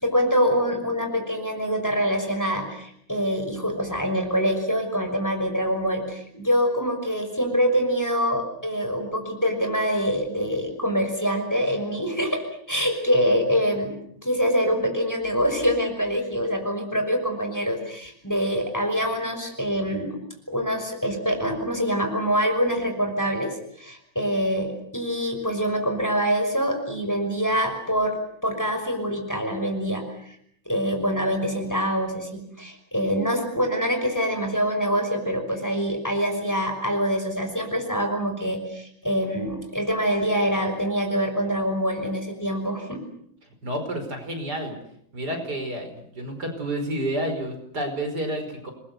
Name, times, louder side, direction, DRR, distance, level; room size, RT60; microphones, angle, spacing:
voice 1, 0.0-12.4 12.7-13.9 14.2-20.2 20.5-30.4 30.7-43.0, equal, 10° left, 4 dB, 5.8 m, -25 dB
voice 2, 43.6-44.8 45.1-48.7, right 1 dB, 55° right, 5 dB, 5.7 m, -30 dB
29.0 x 21.5 x 8.1 m, 0.70 s
omnidirectional pair, 2.1 m